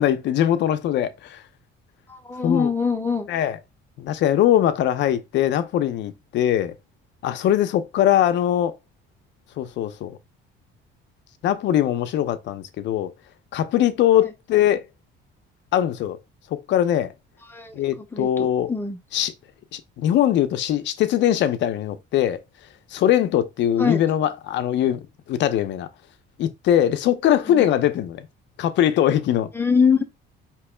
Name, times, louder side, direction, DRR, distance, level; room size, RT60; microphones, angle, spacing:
voice 1, 0.0-1.4 2.4-2.7 3.3-3.6 4.0-6.8 7.2-8.8 9.6-10.2 11.4-13.1 13.5-14.8 15.7-16.2 16.5-17.1 17.7-18.7 19.1-19.3 19.7-22.4 22.9-25.9 26.4-28.3 28.6-29.5, left 11 dB, 60° left, 0.6 m, -21 dB
voice 2, 2.1-3.3 14.2-14.3 17.5-17.8 18.1-19.0 23.8-24.0 27.5-27.6 29.5-30.0, left 5 dB, 10° left, 0.7 m, -23 dB
4.6 x 3.0 x 3.2 m
cardioid pair, 150°, 21 cm